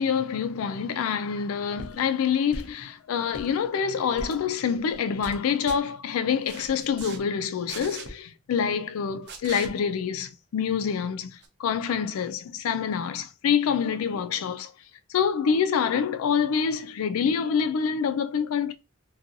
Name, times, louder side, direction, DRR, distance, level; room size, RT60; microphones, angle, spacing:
voice 1, 0.0-14.7 15.1-18.7, left 7 dB, 85° left, 0.3 m, -26 dB
sound 1, 1.8-2.0 2.5-2.9 3.2-3.5 4.1-4.4 4.9-5.4 5.7-5.8 6.4-7.2 7.7-8.1 9.3-9.7 11.4-11.5, right 3 dB, 55° right, 0.5 m, -39 dB
2.6 x 2.3 x 2.6 m
head